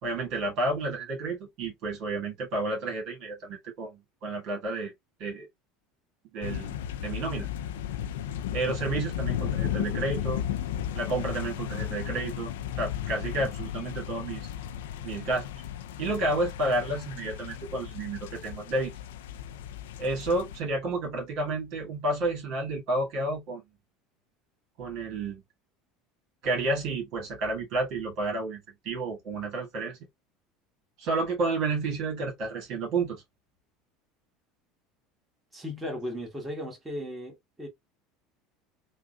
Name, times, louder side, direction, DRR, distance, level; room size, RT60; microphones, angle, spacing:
voice 1, 0.0-4.9 5.2-5.5 6.3-7.5 8.5-10.4 10.9-12.5 12.8-14.5 15.0-15.5 16.0-18.9 20.0-23.6 24.8-25.4 26.4-30.0 31.0-33.2, right 2 dB, 60° right, 1.8 m, -31 dB
sound 1, 6.4-20.6, left 10 dB, 90° left, 0.4 m, -34 dB
voice 2, 35.5-37.7, left 1 dB, 10° right, 1.6 m, -36 dB
3.6 x 2.4 x 2.3 m
supercardioid pair, 100°, 0 cm